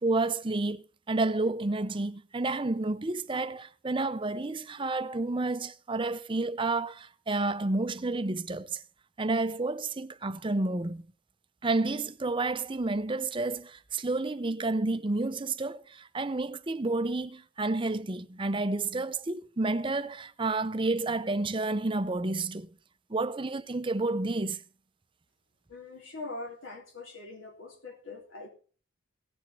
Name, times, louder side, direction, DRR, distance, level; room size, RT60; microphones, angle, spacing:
voice 1, 0.0-8.8 9.2-11.0 11.6-22.7 23.1-24.6, right 2 dB, 25° right, 0.6 m, -30 dB
voice 2, 25.7-28.5, left 3 dB, 70° left, 3.3 m, -42 dB
17.5 x 6.7 x 4.5 m
head